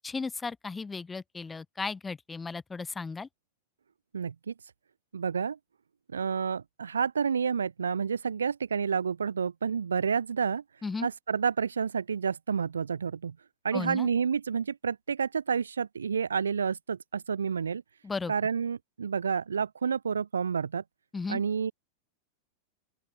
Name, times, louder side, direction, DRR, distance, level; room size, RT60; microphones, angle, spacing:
voice 1, 0.0-3.3 10.8-11.1 13.7-14.1 18.0-18.3 21.1-21.4, left 4 dB, 15° left, 2.9 m, -35 dB
voice 2, 4.1-4.5 5.1-5.6 6.1-10.6 11.0-13.4 13.6-17.8 18.3-20.8 21.3-21.7, right 6 dB, 70° right, 2.7 m, -29 dB
open air
figure-of-eight pair, 90°, 0 cm